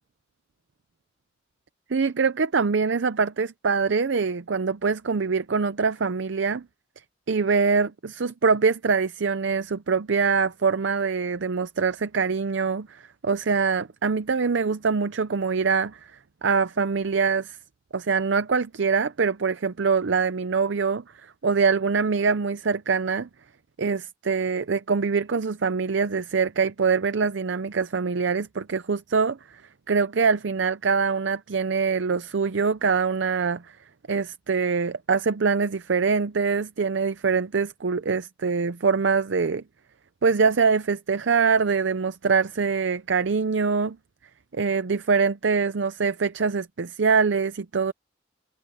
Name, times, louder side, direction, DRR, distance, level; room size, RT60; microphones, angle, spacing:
voice 1, 1.9-6.7 7.3-16.0 16.4-17.6 17.9-23.3 23.8-29.6 29.9-33.8 34.1-39.6 40.2-44.0 44.5-47.9, right 5 dB, 65° right, 0.6 m, -24 dB
head